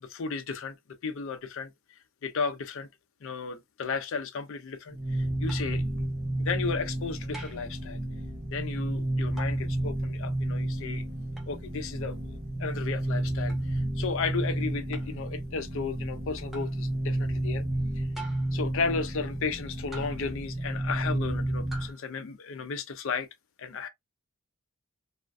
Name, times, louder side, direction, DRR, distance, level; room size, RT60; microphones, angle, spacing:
voice 1, 0.0-0.8 1.0-1.7 2.2-2.9 3.2-8.0 8.5-11.0 11.5-17.6 18.0-18.1 18.5-23.3 23.6-23.9, left 5 dB, 60° left, 0.4 m, -34 dB
sound 1, 4.9-21.9, right 1 dB, 30° right, 0.9 m, -31 dB
sound 2, 5.5-5.8 7.3-7.7 9.4-9.6 11.4-11.5 13.5-13.7 14.9-15.2 16.5-16.8 18.1-18.6 19.9-20.4 21.7-22.0, right 2 dB, ahead, 0.6 m, -45 dB
2.4 x 2.2 x 2.4 m
head